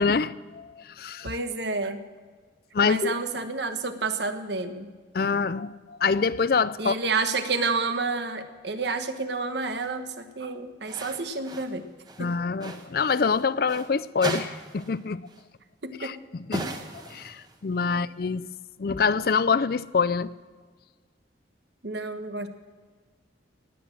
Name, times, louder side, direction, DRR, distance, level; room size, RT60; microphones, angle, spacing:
voice 1, 0.0-1.3 2.7-3.1 5.1-7.0 12.2-15.3 16.0-16.1 16.5-16.7 16.9-18.5 18.8-20.3, left 5 dB, 55° left, 0.4 m, -25 dB
voice 2, 1.2-2.0 2.8-4.9 6.8-11.8 12.2-12.3 15.8-16.1 17.9-18.0 21.8-22.5, right 3 dB, 70° right, 1.3 m, -30 dB
sound 1, 9.6-9.9 10.8-11.8 12.0-13.9 14.2-15.0 15.3-15.4 16.5-17.7, right 2 dB, 20° right, 1.3 m, -37 dB
18.5 x 9.9 x 7.6 m
head